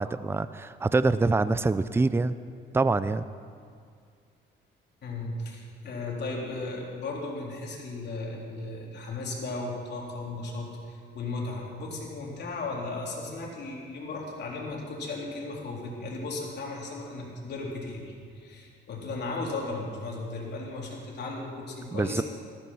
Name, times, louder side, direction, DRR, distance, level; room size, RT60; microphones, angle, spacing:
voice 1, 0.0-2.3 2.7-3.2 21.9-22.2, right 3 dB, 10° right, 14 dB, 0.5 m, -25 dB
voice 2, 5.0-22.2, left 2 dB, 60° left, -2 dB, 3.7 m, -36 dB
14.5 x 14.0 x 5.7 m, 2.2 s
cardioid pair, 90°, 20 cm